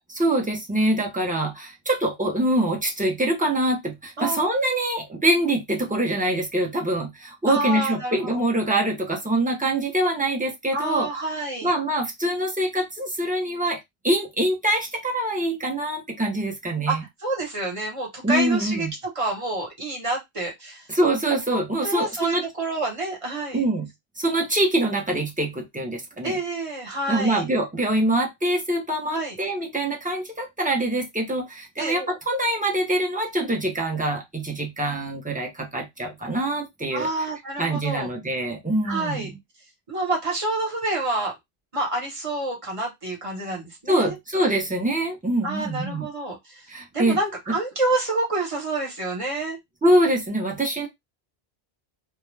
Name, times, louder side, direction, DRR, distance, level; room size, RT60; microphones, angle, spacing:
voice 1, 0.1-11.1 11.6-13.8 14.0-17.0 18.2-18.9 20.9-22.4 23.5-23.9 24.2-26.4 27.1-37.1 37.6-39.4 43.9-46.1 46.7-47.2 49.8-50.9, right 1 dB, 10° right, 1 dB, 0.5 m, -24 dB
voice 2, 4.2-4.5 7.5-8.3 10.7-11.7 16.9-18.9 19.1-20.9 21.5-23.6 26.2-27.4 29.1-29.4 31.8-32.2 36.9-38.1 38.8-39.3 39.9-41.3 41.7-44.2 45.4-46.6 46.9-49.6, right 2 dB, 35° right, 0 dB, 1.0 m, -28 dB
2.3 x 2.2 x 3.1 m, 0.17 s
omnidirectional pair, 1.1 m